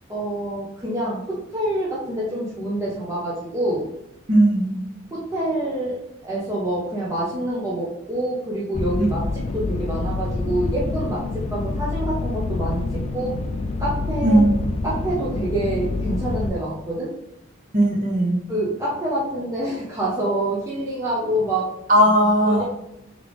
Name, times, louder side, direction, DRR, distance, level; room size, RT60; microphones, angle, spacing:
voice 1, 0.1-3.9 5.1-12.8 13.1-13.4 13.8-14.4 14.8-17.1 18.5-21.7 22.4-22.6, right 1 dB, 15° right, -6 dB, 0.7 m, -26 dB
voice 2, 4.3-4.7 9.0-9.1 14.2-14.6 17.7-18.4 21.9-22.6, right 1 dB, 40° right, -1 dB, 1.1 m, -17 dB
sound 1, 8.7-16.5, left 3 dB, 30° left, 0.3 m, -27 dB
3.8 x 3.2 x 3.4 m, 0.84 s
head